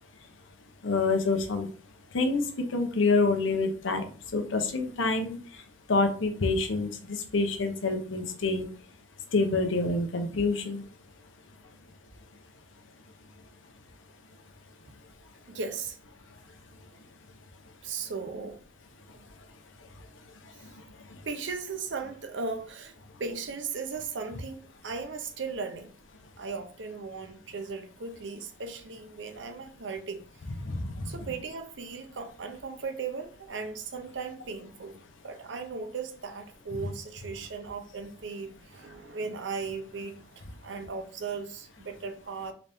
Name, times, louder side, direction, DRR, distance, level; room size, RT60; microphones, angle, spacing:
voice 1, 0.8-1.7 2.1-8.7 9.3-10.8 19.8-21.2 30.6-31.2, left 3 dB, 90° left, 0.8 m, -28 dB
voice 2, 15.5-16.0 17.8-18.6 19.1-19.2 20.6-20.7 21.2-22.9 23.2-25.9 26.4-30.2 31.0-42.5, right 4 dB, 70° right, 0.6 m, -37 dB
3.9 x 3.4 x 2.7 m
head